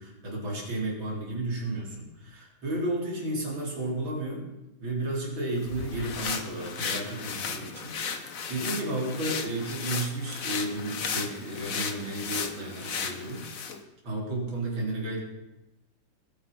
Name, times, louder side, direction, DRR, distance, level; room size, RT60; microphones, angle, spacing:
voice 1, 0.0-4.4 4.8-13.5 14.0-15.2, right 2 dB, 75° right, -2 dB, 4.7 m, -33 dB
sound 1, 5.6-13.8, left 6 dB, 50° left, 1.4 m, -35 dB
21.0 x 9.3 x 5.5 m, 0.98 s
omnidirectional pair, 2.2 m